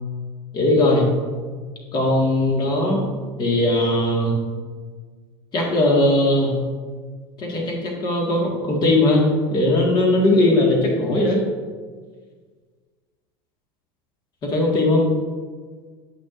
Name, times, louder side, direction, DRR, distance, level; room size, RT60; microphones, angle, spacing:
voice 1, 0.5-1.1 1.9-3.0 3.4-4.3 5.5-6.6 7.4-11.4 14.4-15.1, left 1 dB, 40° left, -1 dB, 1.7 m, -19 dB
8.4 x 5.9 x 2.5 m, 1.5 s
supercardioid pair, 125°, 12 cm